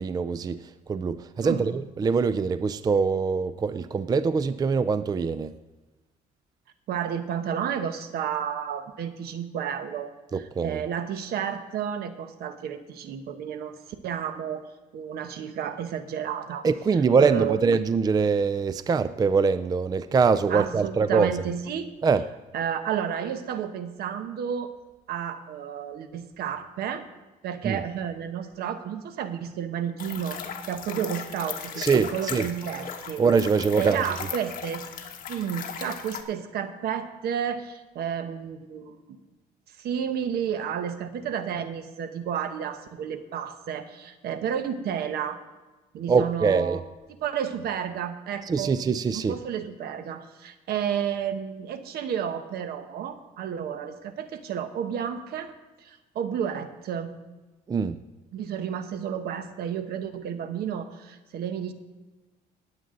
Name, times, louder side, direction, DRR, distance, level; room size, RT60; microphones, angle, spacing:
voice 1, 0.0-5.5 10.3-10.8 16.6-21.5 22.0-22.2 27.6-27.8 31.8-32.5 33.2-34.1 46.1-46.8 48.4-49.4 57.7-58.0, right 5 dB, 25° right, 13 dB, 0.4 m, -23 dB
voice 2, 6.9-13.8 14.0-14.6 14.9-16.6 17.2-17.6 20.5-21.9 22.5-24.7 25.1-27.0 27.4-33.3 33.8-34.8 35.3-39.2 39.8-45.4 45.9-46.8 47.2-48.7 49.1-55.5 55.8-57.1 58.3-61.7, right 8 dB, 70° right, 9 dB, 1.1 m, -31 dB
sound 1, 30.0-36.2, left 7 dB, 55° left, 1.3 m, -37 dB
19.5 x 8.1 x 3.8 m, 1.2 s
cardioid pair, 110°, 17 cm